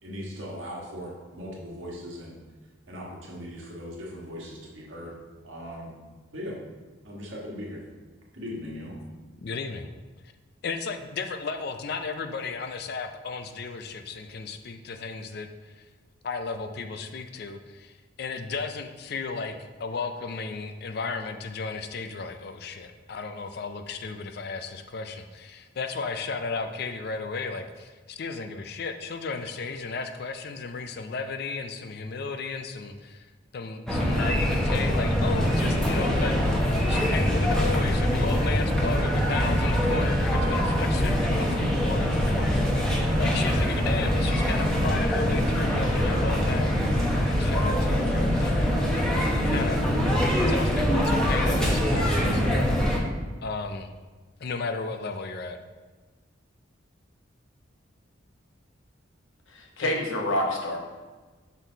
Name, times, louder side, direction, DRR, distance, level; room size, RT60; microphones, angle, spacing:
voice 1, 0.0-2.4 2.9-5.1 5.4-5.9 6.3-6.6 7.0-7.8 8.3-9.0, equal, 75° right, -3 dB, 1.5 m, -38 dB
voice 2, 9.4-9.9 10.6-15.8 16.2-33.3 33.5-46.7 47.3-49.8 50.5-52.7 53.4-53.9 54.4-55.6 59.8-59.9, left 4 dB, 50° left, 7 dB, 0.4 m, -34 dB
sound 1, 33.9-53.0, equal, 5° left, 0.9 m, -24 dB
voice 3, 59.5-60.8, left 1 dB, 75° left, 1 dB, 1.0 m, -28 dB
6.3 x 4.1 x 3.9 m, 1.3 s
head